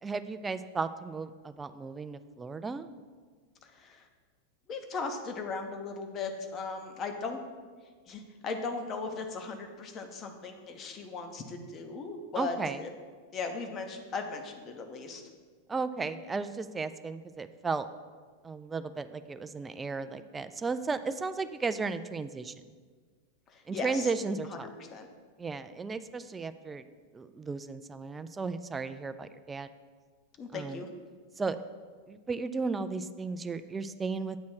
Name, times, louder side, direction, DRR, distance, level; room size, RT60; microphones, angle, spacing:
voice 1, 0.0-2.9 12.4-12.8 15.7-17.9 18.4-22.5 23.7-24.7 25.4-26.8 27.1-29.7 30.5-30.8 31.4-31.6 32.1-34.4, right 4 dB, 15° right, 11 dB, 0.3 m, -34 dB
voice 2, 3.6-4.1 4.7-7.4 8.1-12.9 13.3-15.2 23.5-24.1 24.5-25.1 30.4-30.9, left 4 dB, 30° left, 5 dB, 0.8 m, -38 dB
8.7 x 3.1 x 6.1 m, 1.5 s
figure-of-eight pair, 90°, 0 cm